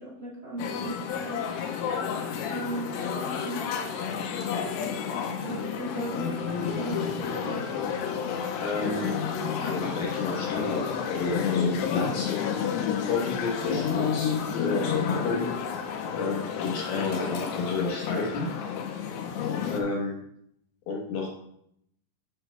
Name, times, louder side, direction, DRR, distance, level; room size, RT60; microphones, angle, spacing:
voice 1, 0.0-1.4 2.5-3.6 3.9-4.0 4.3-4.4 5.4-7.7, right 1 dB, 40° right, -4 dB, 1.6 m, -37 dB
sound 1, 0.6-19.8, left 7 dB, 90° left, 2.8 m, -30 dB
voice 2, 8.6-9.2 9.5-12.3 13.0-15.4 16.1-18.5 19.7-20.2 20.9-21.3, left 3 dB, 75° left, -2 dB, 3.0 m, -31 dB
12.0 x 6.7 x 2.3 m, 0.74 s
omnidirectional pair, 4.7 m